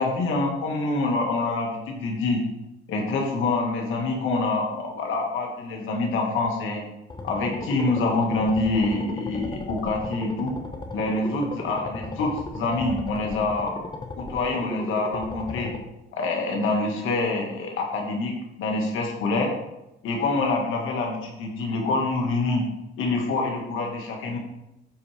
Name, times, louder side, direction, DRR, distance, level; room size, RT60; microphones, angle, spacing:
voice 1, 0.0-2.4 2.9-6.8 7.2-10.5 10.9-13.7 14.2-15.7 16.1-19.5 20.0-22.7 23.0-24.4, left 3 dB, 85° left, 0 dB, 2.0 m, -26 dB
sound 1, 7.1-15.8, left 2 dB, 25° left, 1.1 m, -36 dB
12.5 x 4.5 x 3.5 m, 0.92 s
cardioid pair, 90°, 20 cm